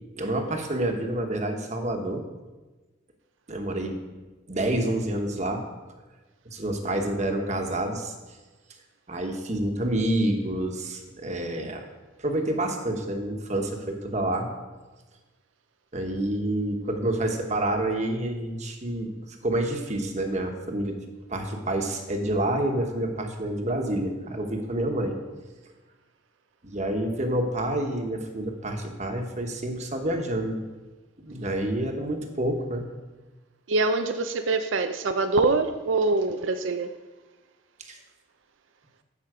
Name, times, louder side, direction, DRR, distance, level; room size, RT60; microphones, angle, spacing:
voice 1, 0.2-2.2 3.5-4.0 4.5-5.6 6.5-8.1 9.1-11.9 12.2-14.5 15.9-19.1 19.4-21.0 21.3-25.2 26.6-30.6 31.2-32.9 37.8-38.0, right 1 dB, 40° right, 3 dB, 1.2 m, -28 dB
voice 2, 33.7-36.9, right 3 dB, 85° right, 7 dB, 0.5 m, -24 dB
14.5 x 5.7 x 4.9 m, 1.2 s
head